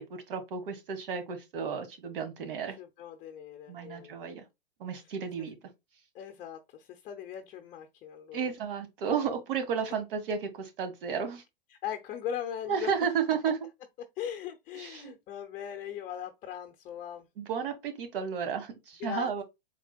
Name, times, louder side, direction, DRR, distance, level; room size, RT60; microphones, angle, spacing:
voice 1, 0.0-2.8 3.7-4.4 4.8-5.5 8.3-11.4 12.7-13.6 14.7-15.1 17.4-19.4, right 6 dB, 60° right, 1.6 m, -33 dB
voice 2, 2.8-4.3 6.1-8.5 11.7-12.9 14.2-17.3 19.0-19.3, left 9 dB, 25° left, 0.6 m, -39 dB
4.7 x 3.7 x 2.3 m
hypercardioid pair, 115°, 30 cm